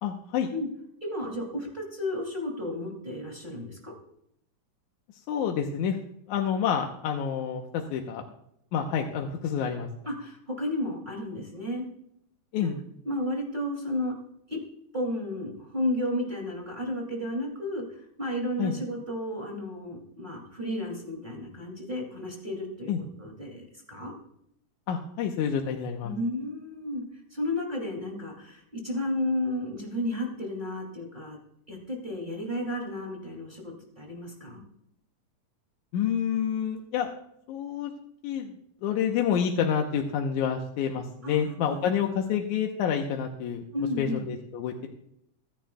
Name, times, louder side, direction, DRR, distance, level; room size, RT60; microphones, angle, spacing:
voice 1, 0.0-0.5 5.3-6.0 6.3-8.2 8.7-9.9 12.5-12.7 18.6-18.8 22.9-23.0 24.9-26.1 35.9-37.1 37.5-37.9 38.2-38.6 38.8-43.6 44.0-44.9, left 8 dB, 80° left, 2 dB, 2.3 m, -28 dB
voice 2, 1.0-3.9 10.1-11.8 12.6-12.7 13.0-14.1 14.5-14.6 14.9-22.9 23.2-24.1 26.0-27.0 27.3-31.4 31.7-34.6 41.2-41.9 43.7-44.2, left 1 dB, 15° right, 0 dB, 2.5 m, -33 dB
24.5 x 10.0 x 2.3 m, 0.73 s
omnidirectional pair, 3.5 m